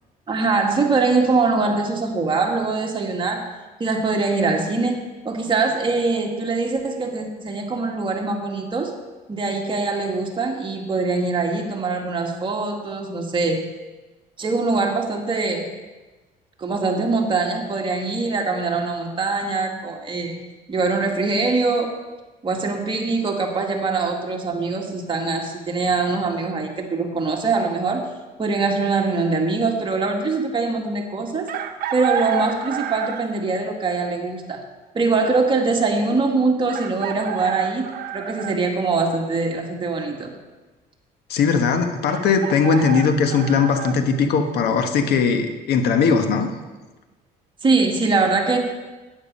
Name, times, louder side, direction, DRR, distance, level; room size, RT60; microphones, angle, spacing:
voice 1, 0.3-3.5 3.8-8.9 9.3-13.7 14.4-15.7 16.6-20.4 20.7-21.9 22.4-28.0 28.4-31.5 31.9-34.6 34.9-37.9 38.1-40.3 47.6-48.9, right 3 dB, 30° right, 1 dB, 2.0 m, -23 dB
Chicken rooster, 31.5-33.4 35.1-35.2 36.7-38.6 42.1-44.0, right 10 dB, 60° right, 1.1 m, -29 dB
voice 2, 41.3-46.5, left 5 dB, 75° left, 6 dB, 1.4 m, -19 dB
12.5 x 9.6 x 5.5 m, 1.2 s
cardioid pair, 110°, 17 cm